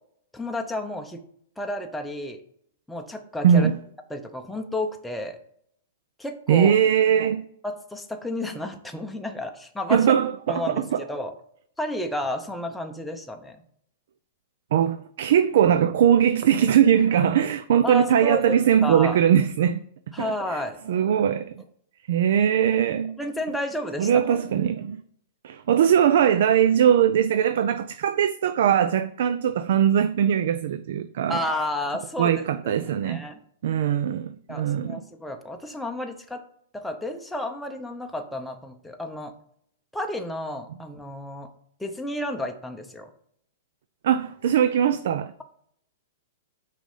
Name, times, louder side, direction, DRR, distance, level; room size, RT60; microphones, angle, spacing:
voice 1, 0.3-1.2 1.6-2.4 2.9-3.7 4.1-5.4 6.2-6.8 7.6-10.1 10.5-11.3 11.8-13.6 17.8-18.6 18.8-19.2 20.1-20.8 23.2-24.4 31.3-33.4 34.5-36.4 36.7-39.3 39.9-41.5 41.8-43.1, left 1 dB, 5° left, 0.7 m, -31 dB
voice 2, 3.4-3.8 6.5-7.4 9.9-11.0 14.7-19.8 20.2-20.6 20.9-21.5 22.1-23.2 24.0-25.0 25.4-31.4 32.2-33.2 33.6-35.0 44.0-45.3, right 9 dB, 65° right, 0.4 m, -21 dB
6.1 x 4.2 x 5.4 m
hypercardioid pair, 150°, 0 cm